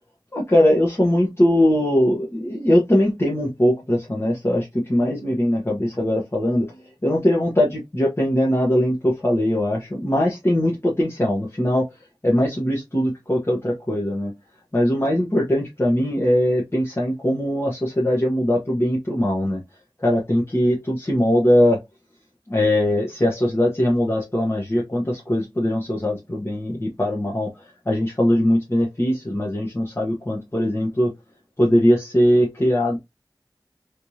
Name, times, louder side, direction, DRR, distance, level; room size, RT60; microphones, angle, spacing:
voice 1, 0.3-6.8 7.0-11.9 12.2-14.3 14.7-19.6 20.0-21.8 22.5-27.5 27.8-31.1 31.6-33.0, left 1 dB, 30° left, 1.2 m, -21 dB
3.3 x 3.1 x 2.7 m
wide cardioid pair, 45°, 8 cm